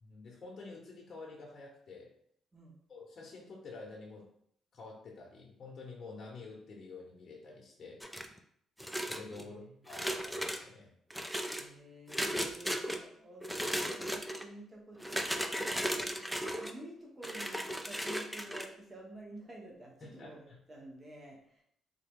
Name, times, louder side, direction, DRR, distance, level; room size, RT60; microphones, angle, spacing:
voice 1, 0.0-2.1 2.9-4.3 4.7-8.0 9.0-10.9 20.0-20.6, left 3 dB, 45° left, -3 dB, 0.8 m, -49 dB
sound 1, 8.0-8.4 8.8-9.4 9.9-10.6 11.1-11.6 12.1-13.0 13.4-14.4 15.0-16.7 17.2-18.7, equal, 5° right, 0.4 m, -36 dB
voice 2, 9.4-10.0 11.5-21.6, right 1 dB, 25° right, -2 dB, 1.0 m, -51 dB
3.6 x 2.2 x 3.6 m, 0.68 s
cardioid pair, 90°, 0 cm